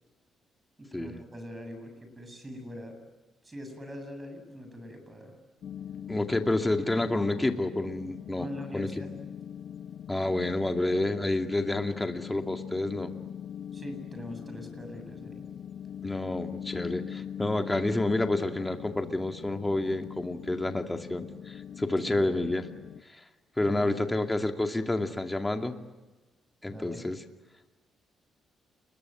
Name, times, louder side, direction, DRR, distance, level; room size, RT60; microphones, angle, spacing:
voice 1, 0.8-3.0 3.4-5.4 8.4-9.1 13.7-15.5 22.1-22.3 23.6-24.2 26.7-27.1, equal, 20° right, 6 dB, 7.8 m, -42 dB
sound 1, 5.6-23.0, left 9 dB, 65° left, 1.2 m, -42 dB
voice 2, 6.1-8.5 8.7-8.9 10.1-13.1 16.0-22.7 23.1-23.2 23.6-25.8 26.6-27.2, left 2 dB, 15° left, 5 dB, 2.3 m, -29 dB
30.0 x 22.0 x 9.1 m, 1.2 s
cardioid pair, 90°, 0 cm